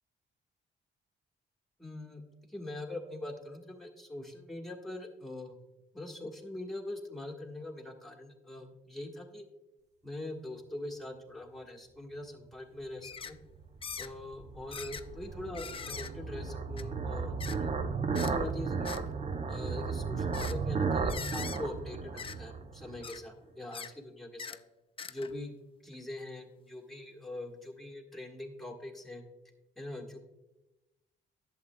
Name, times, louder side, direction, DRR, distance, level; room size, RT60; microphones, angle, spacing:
voice 1, 1.8-2.2 2.5-5.6 5.9-9.4 10.0-13.4 14.0-17.7 18.1-19.0 19.5-24.6 25.1-25.5 25.8-29.2 29.8-30.2, left 1 dB, ahead, 1 dB, 1.4 m, -43 dB
sound 1, 13.0-13.3 13.8-14.1 14.7-15.0 15.5-16.1 16.8-16.9 17.4-17.6 18.1-18.3 18.8-19.0 20.3-20.6 21.1-21.6 22.2-22.4 23.0-23.2 23.7-23.9 24.4-24.6 25.0-25.4 25.9-26.0, left 6 dB, 25° left, 0.4 m, -42 dB
sound 2, 13.6-23.1, right 4 dB, 35° right, 0.6 m, -34 dB
11.0 x 7.2 x 2.2 m, 1.0 s
cardioid pair, 75°, 20 cm